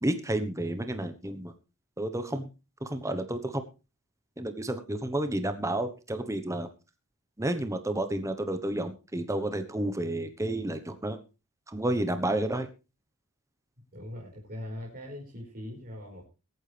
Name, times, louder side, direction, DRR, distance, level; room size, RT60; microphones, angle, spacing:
voice 1, 0.0-1.5 2.0-2.5 2.8-3.6 4.4-6.7 7.4-11.2 11.7-12.7, right 1 dB, 15° right, 8 dB, 1.1 m, -31 dB
voice 2, 13.9-16.3, left 1 dB, 45° right, -2 dB, 4.8 m, -41 dB
22.5 x 9.2 x 3.4 m, 0.31 s
head